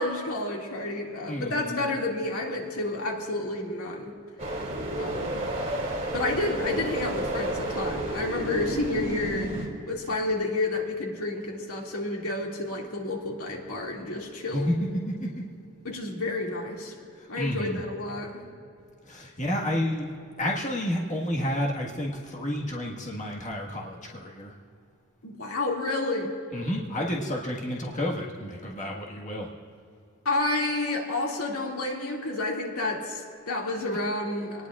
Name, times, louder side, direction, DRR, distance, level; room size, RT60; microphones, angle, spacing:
voice 1, 0.0-4.1 5.0-5.4 6.1-9.5 9.9-14.7 15.8-16.9 17.3-18.4 25.2-26.3 30.2-34.7, left 2 dB, 85° left, -1 dB, 2.3 m, -30 dB
voice 2, 1.3-1.8 14.5-15.3 17.2-17.8 19.0-20.1 20.4-24.5 26.5-29.5, equal, 35° left, -2 dB, 1.6 m, -30 dB
sound 1, 4.4-9.7, right 1 dB, 35° right, 2.9 m, -31 dB
25.5 x 19.5 x 2.5 m, 2.5 s
head